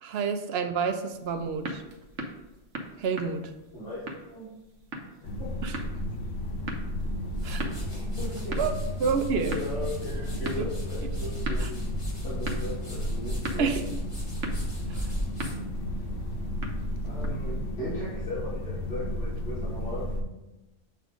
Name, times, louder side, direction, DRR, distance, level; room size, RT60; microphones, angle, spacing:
voice 1, 0.0-1.8 3.0-3.4 5.6-5.8 7.4-7.6 8.6-8.7 9.0-9.6 11.6-11.7 13.6-13.8 14.9-15.1, right 6 dB, 65° right, 7 dB, 0.7 m, -28 dB
sound 1, 1.1-17.6, right 1 dB, 85° right, 1.1 m, -41 dB
voice 2, 3.7-4.5 5.4-5.5 7.6-8.6 9.5-11.8 12.2-13.9 17.0-20.0, left 1 dB, 55° left, -10 dB, 1.8 m, -37 dB
sound 2, 5.2-20.2, left 1 dB, 85° left, 1.0 m, -33 dB
sound 3, 7.1-16.5, equal, 25° left, 1.4 m, -40 dB
7.5 x 2.5 x 5.0 m, 1.0 s
omnidirectional pair, 1.2 m